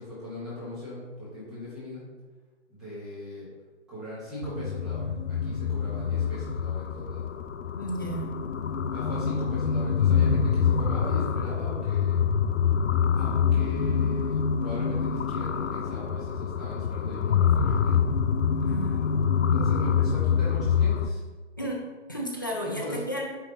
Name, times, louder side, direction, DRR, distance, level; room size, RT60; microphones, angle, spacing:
voice 1, 0.0-2.0 2.7-3.5 3.9-7.4 8.7-12.2 13.1-17.9 18.7-19.0 19.4-21.2 22.6-23.0, left 1 dB, ahead, -12 dB, 0.9 m, -39 dB
sound 1, 4.4-21.1, left 7 dB, 85° left, 0.5 m, -26 dB
voice 2, 7.7-8.3 18.7-19.7 21.6-21.8 22.1-23.3, equal, 20° left, -2 dB, 0.5 m, -33 dB
9.2 x 3.1 x 3.8 m, 1.3 s
hypercardioid pair, 160°, 36 cm